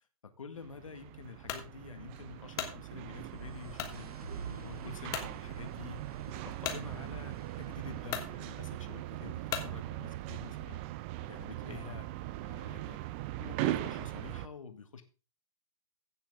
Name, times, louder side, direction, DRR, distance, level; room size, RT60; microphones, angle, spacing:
voice 1, 0.4-4.1 4.5-6.0 6.3-10.8 11.2-12.1 12.4-13.0 13.4-15.0, left 5 dB, 65° left, 8 dB, 1.8 m, -48 dB
sound 1, 0.6-14.5, right 16 dB, 20° right, 0.4 m, -40 dB
sound 2, 1.5-1.7 2.3-2.8 3.7-4.0 4.5-4.6 5.1-5.3 6.6-6.8 7.6-7.7 8.1-8.3 9.5-9.7, left 9 dB, 20° left, 1.3 m, -37 dB
sound 3, 2.8-8.6, right 4 dB, 85° right, 1.7 m, -50 dB
15.5 x 7.0 x 3.6 m, 0.33 s
figure-of-eight pair, 125°, 19 cm